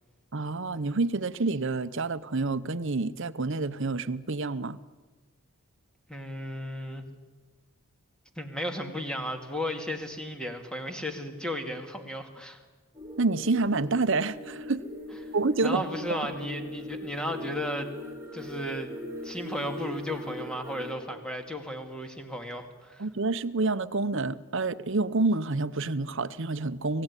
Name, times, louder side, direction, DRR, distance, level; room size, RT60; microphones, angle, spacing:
voice 1, 0.3-4.8 13.2-14.8 15.3-15.8 16.1-16.2 23.0-27.0, right 3 dB, 60° right, 0.8 m, -28 dB
voice 2, 6.1-7.1 8.4-12.6 15.6-17.9 18.3-18.9 19.2-23.1, equal, 5° left, 2.2 m, -34 dB
sound 1, 12.9-20.9, left 1 dB, 15° right, 4.5 m, -40 dB
25.0 x 17.0 x 10.0 m
head